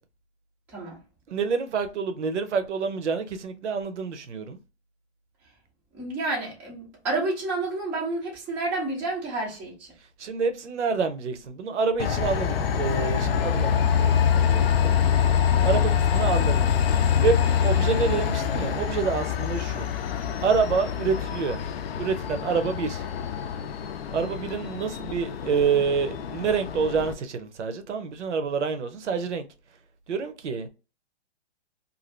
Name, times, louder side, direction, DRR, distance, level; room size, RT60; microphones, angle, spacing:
voice 1, 1.3-4.6 10.2-14.9 15.6-16.7 17.2-19.9 20.4-21.6 22.0-23.0 24.1-29.4 30.1-30.7, right 5 dB, 85° right, 0.7 m, -27 dB
voice 2, 5.9-9.9, right 2 dB, 5° right, 0.4 m, -30 dB
Train, 12.0-27.1, left 8 dB, 60° left, 0.5 m, -25 dB
2.6 x 2.5 x 3.1 m
hypercardioid pair, 145°, 34 cm